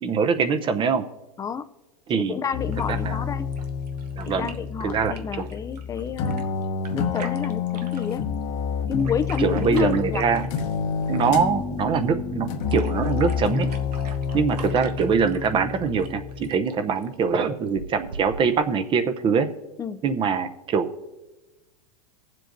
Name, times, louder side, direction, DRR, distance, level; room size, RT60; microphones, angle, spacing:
voice 1, 0.0-1.0 2.1-2.4 3.0-3.2 4.2-4.5 4.8-5.5 9.4-10.5 11.1-13.7 14.3-19.5 20.0-20.9, right 6 dB, 25° right, 10 dB, 0.7 m, -23 dB
voice 2, 2.1-3.5 4.2-6.5 6.9-8.2 8.9-10.3 19.8-20.0, left 6 dB, 15° left, 11 dB, 0.5 m, -29 dB
sound 1, 2.5-16.5, left 6 dB, 55° left, 1.1 m, -29 dB
sound 2, 2.7-18.7, right 5 dB, 85° right, 0.9 m, -44 dB
20.0 x 7.6 x 2.6 m, 1.1 s
hypercardioid pair, 115°, 20 cm